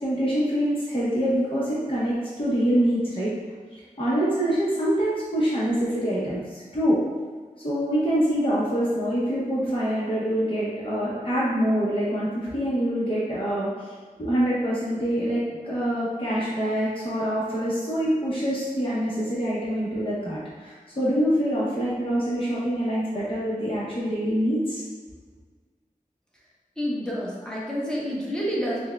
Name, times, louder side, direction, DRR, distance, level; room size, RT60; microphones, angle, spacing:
voice 1, 0.0-3.3 3.7-7.0 7.6-13.9 14.2-24.8, equal, 35° left, -8 dB, 0.9 m, -25 dB
voice 2, 26.8-28.9, equal, 5° left, -5 dB, 1.0 m, -28 dB
5.9 x 2.2 x 2.3 m, 1.5 s
wide cardioid pair, 55°, 15 cm